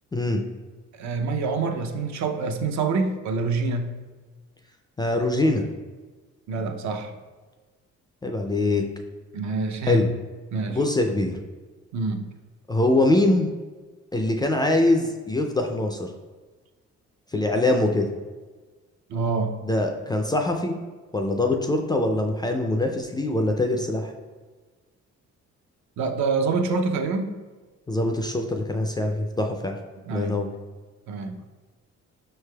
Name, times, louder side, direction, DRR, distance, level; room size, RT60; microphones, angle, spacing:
voice 1, 0.1-0.4 5.0-5.6 8.2-8.8 9.8-10.1 10.7-11.4 12.7-13.5 14.1-16.1 17.3-18.1 19.6-20.8 21.1-24.1 27.9-29.8 30.1-30.5, left 2 dB, 15° left, 3 dB, 0.3 m, -23 dB
voice 2, 0.9-3.9 6.5-7.1 9.3-10.0 10.5-10.8 11.9-12.3 19.1-19.5 26.0-27.3 30.1-30.4 31.1-31.4, right 4 dB, 65° right, 5 dB, 0.5 m, -26 dB
5.6 x 3.3 x 2.2 m, 1.3 s
cardioid pair, 90°, 30 cm